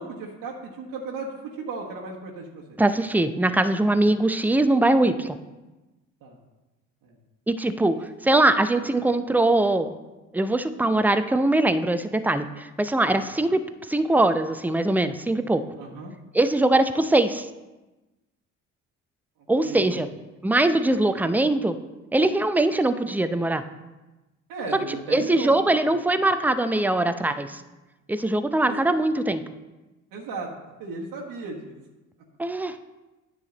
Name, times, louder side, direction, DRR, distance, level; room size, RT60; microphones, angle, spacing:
voice 1, 0.0-2.8 6.2-6.4 7.0-7.2 13.1-13.3 15.8-16.1 19.6-20.0 21.1-21.3 24.5-25.5 25.8-25.9 28.7-28.8 30.1-30.5 30.8-31.7, right 3 dB, 60° right, -3 dB, 1.4 m, -35 dB
voice 2, 2.8-5.4 7.5-8.0 8.2-9.9 10.3-15.7 16.3-17.5 19.5-20.1 20.4-21.8 22.1-23.6 25.1-27.6 28.1-29.4 32.4-32.8, right 2 dB, 5° right, 10 dB, 0.5 m, -22 dB
9.7 x 6.5 x 3.9 m, 1.1 s
hypercardioid pair, 50°, 39 cm